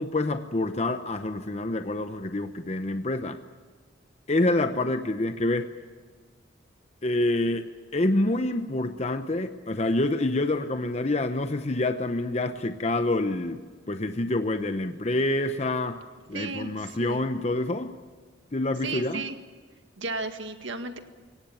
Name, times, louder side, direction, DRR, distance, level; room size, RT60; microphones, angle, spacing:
voice 1, 0.0-3.4 4.3-5.7 7.0-16.0 16.3-18.0 18.5-19.3, left 2 dB, 35° left, 8 dB, 0.8 m, -27 dB
voice 2, 16.3-17.2 18.8-19.4 20.0-21.0, right 3 dB, 85° right, 7 dB, 1.8 m, -34 dB
23.0 x 18.0 x 8.9 m, 1.5 s
head